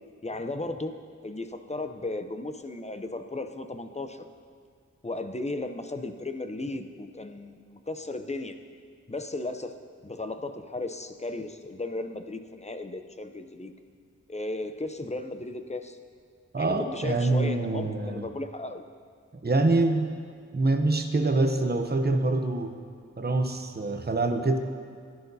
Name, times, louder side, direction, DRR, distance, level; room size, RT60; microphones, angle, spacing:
voice 1, 0.2-0.9 1.2-4.2 5.0-8.6 9.1-9.8 10.0-13.7 14.3-16.0 16.6-18.8, left 2 dB, 20° left, 7 dB, 0.6 m, -35 dB
voice 2, 16.5-18.3 19.4-20.1 20.5-22.8 23.2-24.6, right 2 dB, 35° right, 5 dB, 0.8 m, -25 dB
16.0 x 10.5 x 2.7 m, 2.1 s
wide cardioid pair, 65°, 30 cm